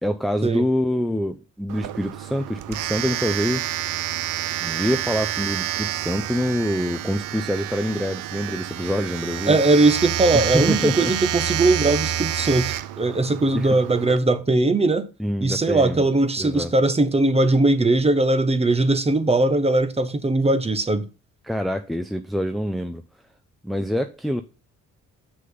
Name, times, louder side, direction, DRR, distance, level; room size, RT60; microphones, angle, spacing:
voice 1, 0.0-3.7 4.6-9.6 10.3-11.1 13.5-13.7 15.2-16.0 16.4-16.7 21.4-23.0 23.6-24.4, equal, ahead, 0.6 m, -25 dB
Domestic sounds home sounds, 1.7-14.2, right 13 dB, 90° right, 0.6 m, -28 dB
voice 2, 9.5-15.1 15.4-21.1, right 2 dB, 20° right, 1.1 m, -20 dB
7.8 x 6.4 x 3.9 m
cardioid pair, 90°, 30 cm